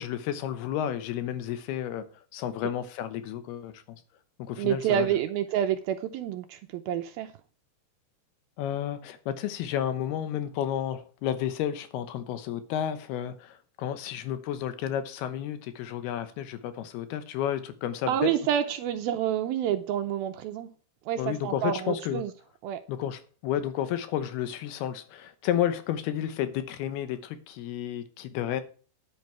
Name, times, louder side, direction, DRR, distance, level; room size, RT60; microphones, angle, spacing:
voice 1, 0.0-2.1 2.3-3.8 4.4-5.1 8.6-18.3 21.2-22.2 22.9-28.6, left 10 dB, 75° left, 2.8 m, -31 dB
voice 2, 4.6-7.3 18.1-20.7 21.1-22.3 22.6-22.8, right 10 dB, 80° right, 2.3 m, -28 dB
10.5 x 9.0 x 4.6 m
omnidirectional pair, 4.9 m